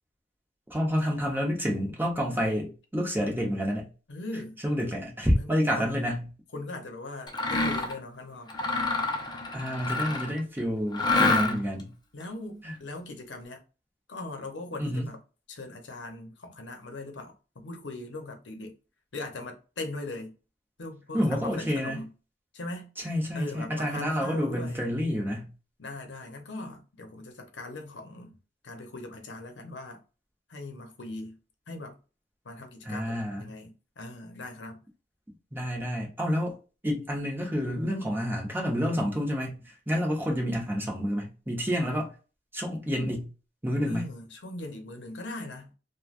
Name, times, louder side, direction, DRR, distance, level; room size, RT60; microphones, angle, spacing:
voice 1, 0.7-3.9 4.6-6.3 9.5-11.9 12.6-12.7 14.8-15.1 21.1-22.0 23.0-25.5 32.8-33.5 35.5-36.6 36.8-42.1 42.5-43.3 43.6-44.1, equal, 10° right, 0.9 m, -29 dB
voice 2, 4.1-4.6 5.4-6.0 6.5-8.5 12.1-13.6 14.1-15.2 15.5-18.7 19.1-20.3 20.8-22.1 22.5-22.9 23.3-24.8 25.8-28.4 28.6-30.0 30.5-31.4 31.7-32.0 32.4-34.8 43.9-45.7, left 2 dB, 85° left, 0.8 m, -40 dB
Mechanisms, 7.3-8.0 8.5-10.4 10.9-11.8, left 3 dB, 25° left, 0.6 m, -27 dB
3.2 x 2.2 x 2.4 m
head